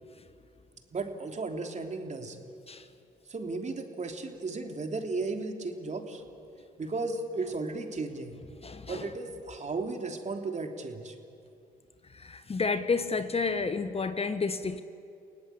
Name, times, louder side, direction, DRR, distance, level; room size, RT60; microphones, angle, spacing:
voice 1, 0.9-2.4 3.3-6.2 6.8-8.3 8.9-11.2, right 3 dB, 35° right, 4 dB, 3.3 m, -35 dB
voice 2, 8.6-9.1 12.0-14.8, left 4 dB, 30° left, 11 dB, 1.3 m, -31 dB
29.5 x 18.0 x 8.6 m, 2.6 s
hypercardioid pair, 55°, 20 cm